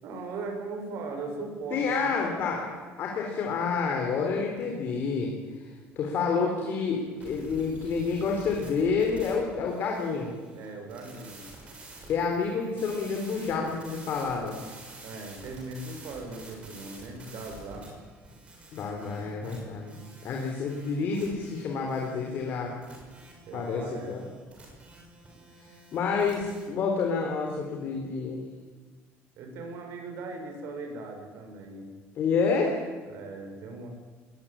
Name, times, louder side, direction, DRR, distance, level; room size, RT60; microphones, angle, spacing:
voice 1, 0.0-2.2 10.5-11.4 15.0-17.9 23.5-24.4 29.4-31.9 33.1-33.9, right 3 dB, 55° right, 4 dB, 7.0 m, -39 dB
voice 2, 1.7-10.3 12.1-14.6 18.7-20.0 20.2-22.7 23.5-24.2 25.6-28.4 32.1-32.9, left 5 dB, 45° left, 1 dB, 4.0 m, -29 dB
sound 1, 7.2-26.7, right 2 dB, 25° right, 6.6 m, -49 dB
24.0 x 20.5 x 9.1 m, 1.4 s
cardioid pair, 170°, 5 cm